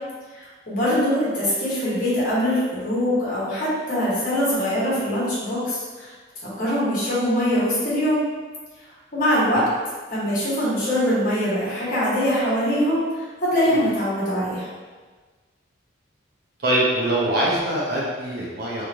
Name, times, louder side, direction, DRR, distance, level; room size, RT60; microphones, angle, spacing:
voice 1, 0.4-6.1 6.6-8.2 9.1-9.6 10.1-14.6, equal, 45° left, -9 dB, 1.1 m, -23 dB
voice 2, 16.6-18.8, right 1 dB, 50° right, -5 dB, 0.6 m, -23 dB
3.1 x 2.6 x 2.3 m, 1.4 s
head